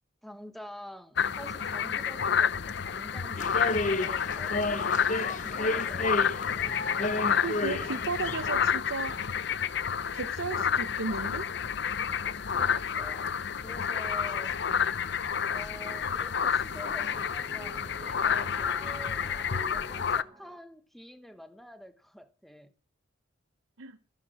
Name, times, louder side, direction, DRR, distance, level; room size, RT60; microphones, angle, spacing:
voice 1, 0.2-6.4 12.5-14.8 15.4-22.7, equal, ahead, 1.1 m, -48 dB
sound 1, 1.2-20.2, left 7 dB, 60° left, 0.6 m, -30 dB
sound 2, 3.4-8.5, left 2 dB, 40° left, 1.0 m, -31 dB
voice 2, 7.4-9.2 10.1-11.5 23.8-24.0, right 4 dB, 90° right, 0.8 m, -34 dB
sound 3, 15.6-20.6, right 2 dB, 20° right, 0.9 m, -50 dB
13.5 x 10.5 x 6.3 m
head